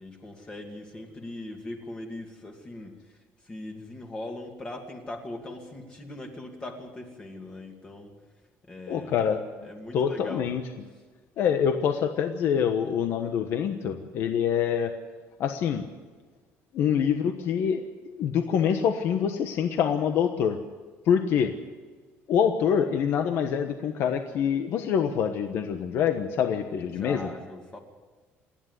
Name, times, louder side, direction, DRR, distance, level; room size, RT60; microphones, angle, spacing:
voice 1, 0.0-8.1 8.7-9.3 9.6-10.5 26.8-27.8, left 1 dB, 20° left, 2 dB, 2.4 m, -40 dB
voice 2, 8.9-9.4 9.9-10.6 11.4-14.9 15.4-15.8 16.7-20.6 21.0-21.5 22.3-27.3, left 8 dB, 55° left, 6 dB, 1.2 m, -25 dB
28.0 x 10.5 x 9.6 m, 1.3 s
cardioid pair, 170°, 5 cm